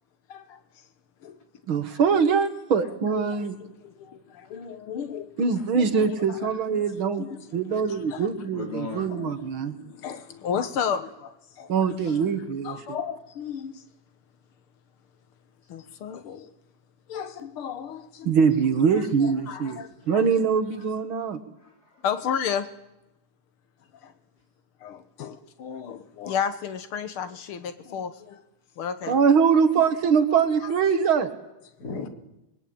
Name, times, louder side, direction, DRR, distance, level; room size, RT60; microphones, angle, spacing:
voice 1, 0.3-0.6 1.2-1.4 1.9-2.0 3.0-6.5 7.1-8.3 9.2-12.2 12.6-13.8 15.7-16.5 17.1-18.3 18.7-20.3 22.0-22.7 23.9-24.1 24.8-28.4 28.8-29.5 29.7-29.9 30.6-30.7 32.0-32.1, left 7 dB, 75° left, 2.1 m, -34 dB
voice 2, 1.7-3.6 5.4-7.2 7.5-9.7 11.7-12.8 18.3-19.8 20.1-21.4 29.1-31.3, right 6 dB, 70° right, 2.4 m, -23 dB
voice 3, 8.4-9.1 9.4-9.5 12.0-12.5 19.7-20.2 21.5-22.1 31.8-32.1, left 4 dB, 45° left, 3.7 m, -39 dB
25.5 x 21.5 x 8.8 m
omnidirectional pair, 2.4 m